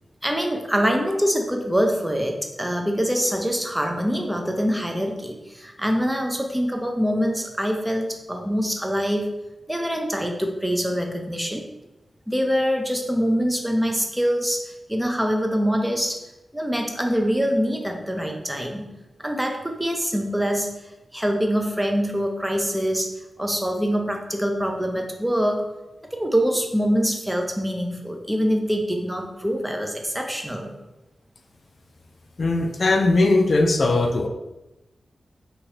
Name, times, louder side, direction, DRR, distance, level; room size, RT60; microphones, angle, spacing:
voice 1, 0.2-9.3 9.7-11.7 12.3-16.2 16.5-18.9 19.2-20.7 21.1-23.1 23.4-25.6 26.1-30.7, equal, 10° right, 3 dB, 0.6 m, -24 dB
voice 2, 32.4-34.3, left 2 dB, 60° left, 4 dB, 0.3 m, -19 dB
3.0 x 2.8 x 2.9 m, 0.99 s
cardioid pair, 55°, 0 cm